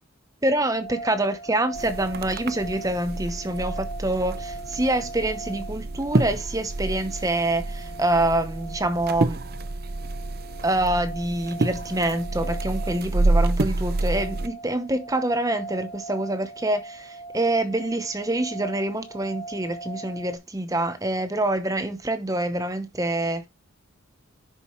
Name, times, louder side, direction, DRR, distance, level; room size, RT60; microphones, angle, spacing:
voice 1, 0.4-9.4 10.6-23.4, right 1 dB, 15° right, 0.8 m, -26 dB
sound 1, 0.7-20.4, right 2 dB, 55° left, 2.2 m, -40 dB
sound 2, 1.7-14.5, right 2 dB, 45° right, 0.7 m, -28 dB
10.0 x 6.9 x 3.1 m
head